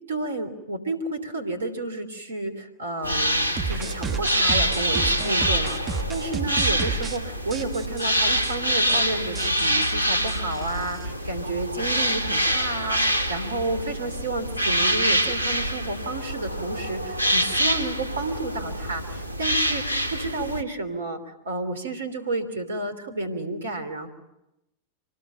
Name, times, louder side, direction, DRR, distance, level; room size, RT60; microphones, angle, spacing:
voice 1, 0.1-24.1, right 2 dB, 70° right, 10 dB, 3.1 m, -31 dB
sound 1, 3.0-20.6, equal, 85° left, 1.3 m, -26 dB
sound 2, 3.6-7.2 7.5-8.1 8.4-8.5 8.8-9.0 9.3-11.0, right 5 dB, 25° right, 1.7 m, -31 dB
25.5 x 20.0 x 9.2 m, 0.92 s
figure-of-eight pair, 90°, 0 cm